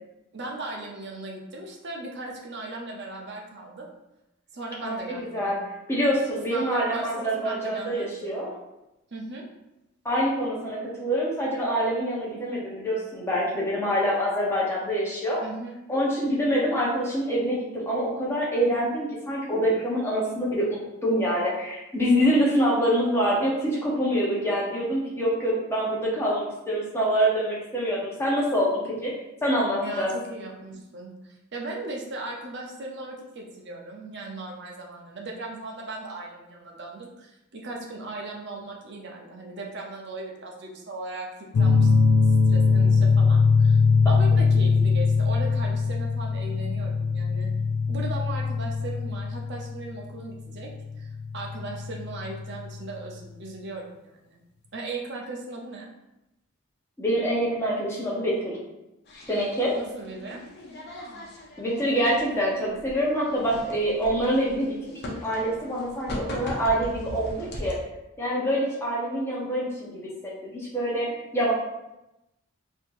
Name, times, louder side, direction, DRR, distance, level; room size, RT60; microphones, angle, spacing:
voice 1, 0.3-3.9 4.5-5.6 6.5-8.4 9.1-9.4 15.4-15.8 29.8-43.8 44.0-47.5 47.9-50.7 51.0-54.4 54.7-55.9 59.7-60.4, right 2 dB, 55° right, -1 dB, 0.7 m, -37 dB
voice 2, 4.8-5.6 5.9-8.5 10.0-15.4 15.9-28.7 29.0-29.1 29.4-30.1 57.0-58.6 59.3-59.8 61.6-67.8 68.2-71.5, equal, 10° left, -5 dB, 0.9 m, -25 dB
sound 1, 41.5-52.7, left 4 dB, 90° left, 0.4 m, -22 dB
sound 2, 59.0-67.7, equal, 50° left, 0.7 m, -40 dB
4.3 x 2.8 x 2.6 m, 0.92 s
head